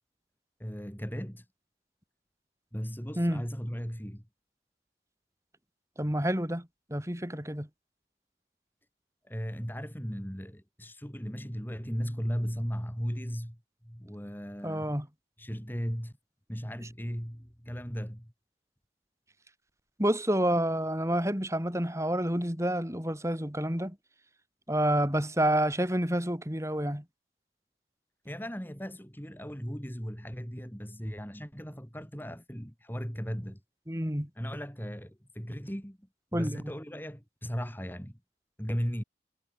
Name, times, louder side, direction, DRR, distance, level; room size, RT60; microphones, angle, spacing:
voice 1, 0.6-1.5 2.7-4.2 9.2-15.0 15.4-16.1 16.5-18.3 28.2-33.6 34.4-38.2 38.6-39.0, equal, 10° left, 7.2 m, -37 dB
voice 2, 6.0-7.7 14.6-15.1 20.0-24.0 24.7-27.0 33.9-34.3 36.3-36.6, right 1 dB, 15° right, 7.1 m, -29 dB
head